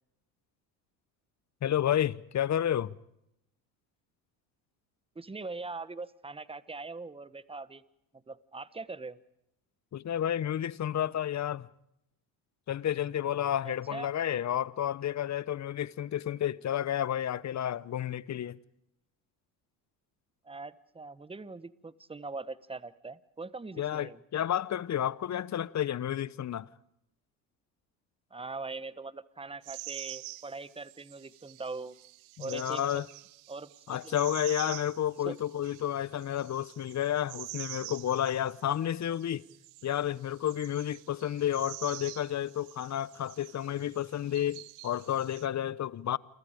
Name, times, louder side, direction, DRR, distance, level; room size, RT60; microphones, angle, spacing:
voice 1, 1.6-2.9 9.9-11.7 12.7-18.6 23.8-26.7 32.4-33.1 33.9-39.4 39.8-46.2, left 11 dB, 35° left, 0.9 m, -31 dB
voice 2, 5.1-7.8 8.3-9.2 13.6-14.1 20.4-24.2 28.3-31.9 32.4-33.0 33.5-34.1 35.2-35.3, right 3 dB, 10° right, 1.1 m, -41 dB
sound 1, 29.6-45.5, right 22 dB, 70° right, 1.1 m, -47 dB
29.0 x 23.5 x 5.1 m
hypercardioid pair, 70°, 50 cm